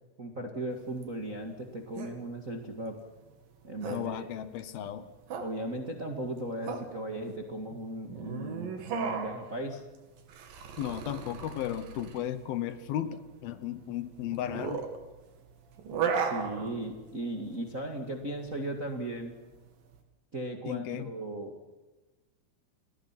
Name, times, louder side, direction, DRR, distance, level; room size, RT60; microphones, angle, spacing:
voice 1, 0.2-3.0 3.6-4.3 5.4-9.8 16.1-19.4 20.3-21.5, right 1 dB, 35° right, 3 dB, 1.4 m, -37 dB
sound 1, 0.7-20.0, right 6 dB, 65° right, 4.0 m, -37 dB
voice 2, 3.9-5.1 10.8-14.9 20.7-21.1, left 11 dB, 75° left, 12 dB, 2.9 m, -35 dB
29.0 x 21.0 x 5.9 m, 1.2 s
omnidirectional pair, 4.5 m